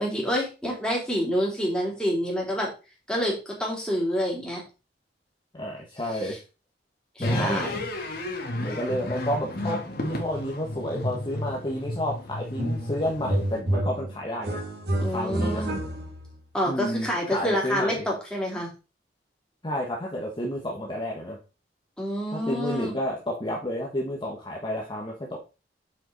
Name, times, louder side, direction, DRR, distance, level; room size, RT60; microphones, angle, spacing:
voice 1, 0.0-2.7 3.1-4.6 6.2-6.4 7.1-7.8 15.0-15.8 16.5-18.7 22.0-23.0, equal, 5° left, -3 dB, 3.3 m, -28 dB
voice 2, 5.5-6.4 7.2-7.6 8.5-14.6 15.0-15.6 16.7-18.1 19.6-21.4 22.3-25.4, equal, 25° left, -2 dB, 1.3 m, -31 dB
sound 1, 7.2-13.6, left 1 dB, 60° left, 1.8 m, -32 dB
sound 2, 12.6-12.9 13.2-16.3, right 1 dB, 65° right, 2.6 m, -29 dB
7.3 x 5.4 x 4.0 m, 0.31 s
head